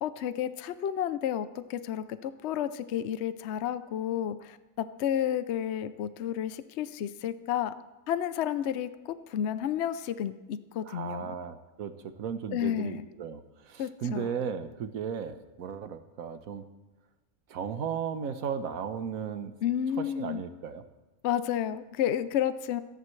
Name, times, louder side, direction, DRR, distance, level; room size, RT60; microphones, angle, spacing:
voice 1, 0.0-7.7 8.1-11.3 12.5-13.1 13.8-14.3 19.6-20.4 21.2-22.8, left 10 dB, 60° left, 13 dB, 0.8 m, -31 dB
voice 2, 10.9-13.4 13.7-16.6 17.5-19.5 20.0-20.8, right 7 dB, 75° right, 9 dB, 1.4 m, -35 dB
27.5 x 11.0 x 3.2 m, 1.1 s
omnidirectional pair, 1.5 m